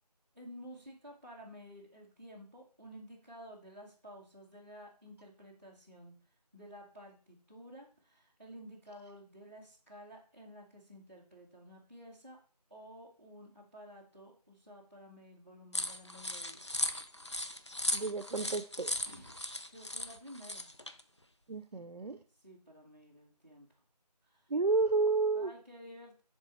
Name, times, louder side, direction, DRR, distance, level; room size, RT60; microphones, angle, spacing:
voice 1, 0.3-6.1 6.5-12.4 12.7-16.7 19.1-20.7 22.4-23.7 24.2-24.5 25.3-26.2, equal, 20° right, -7 dB, 1.0 m, -52 dB
sound 1, 15.7-21.0, left 1 dB, 45° left, 0.4 m, -37 dB
voice 2, 17.9-18.9 21.5-22.2 24.5-25.5, right 3 dB, 75° right, 10 dB, 0.6 m, -31 dB
9.8 x 3.7 x 4.2 m, 0.41 s
figure-of-eight pair, 175°, 21 cm